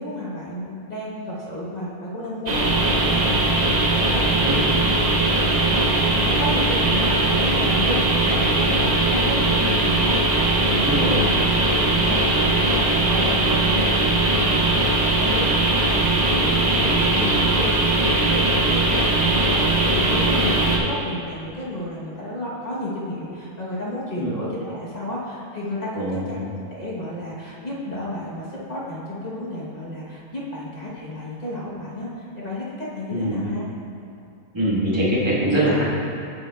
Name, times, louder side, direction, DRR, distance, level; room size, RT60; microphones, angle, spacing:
voice 1, 0.0-4.7 5.0-33.6, left 1 dB, 30° left, -7 dB, 1.0 m, -32 dB
sound 1, 2.5-20.8, right 2 dB, 50° right, 0.4 m, -20 dB
voice 2, 10.7-11.2 24.2-24.3 25.9-26.4 33.1-33.4 34.5-35.8, right 1 dB, 20° right, -8 dB, 1.4 m, -23 dB
8.6 x 7.0 x 2.3 m, 2.6 s
omnidirectional pair, 1.6 m